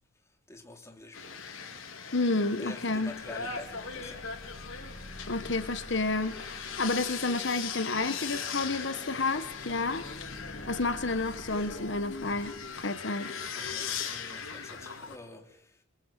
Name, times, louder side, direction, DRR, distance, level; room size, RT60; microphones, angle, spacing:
voice 1, 0.3-1.6 2.5-4.4 13.4-15.8, left 2 dB, 15° left, 3.5 m, -48 dB
sound 1, 1.1-15.2, left 6 dB, 85° left, 4.3 m, -39 dB
voice 2, 2.1-3.1 5.3-10.1 10.7-13.3, left 3 dB, 60° left, 1.4 m, -30 dB
sound 2, 2.8-12.8, equal, 35° left, 2.0 m, -49 dB
29.5 x 22.5 x 7.6 m
head